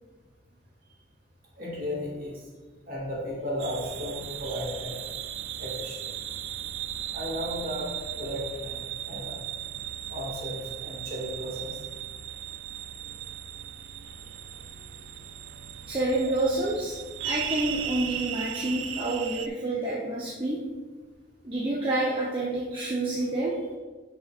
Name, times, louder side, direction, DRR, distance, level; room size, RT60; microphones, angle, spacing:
voice 1, 1.6-2.4 2.9-5.0 5.6-6.1 7.1-9.3 10.1-11.7, equal, 45° right, -4 dB, 2.1 m, -35 dB
sound 1, 3.6-19.5, right 9 dB, 90° right, 0.4 m, -37 dB
voice 2, 15.9-17.0 17.2-20.6 21.4-23.6, right 2 dB, 25° right, -6 dB, 0.8 m, -28 dB
9.9 x 5.8 x 2.5 m, 1.4 s
head